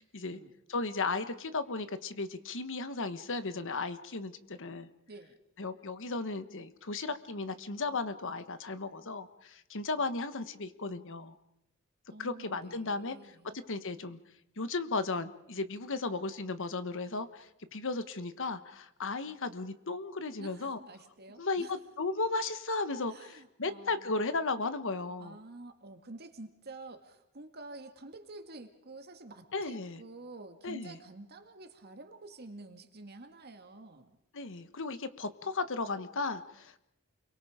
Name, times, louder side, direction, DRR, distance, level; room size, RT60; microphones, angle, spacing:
voice 1, 0.7-4.9 5.6-11.3 12.2-13.2 13.7-14.2 14.6-20.8 21.4-25.4 29.5-30.0 30.6-31.0 34.3-36.8, left 3 dB, 60° left, 11 dB, 1.3 m, -35 dB
voice 2, 5.1-5.4 12.1-13.6 20.4-21.8 23.1-24.4 25.2-34.1, right 2 dB, 50° right, 6 dB, 2.2 m, -49 dB
30.0 x 23.0 x 5.1 m, 0.81 s
head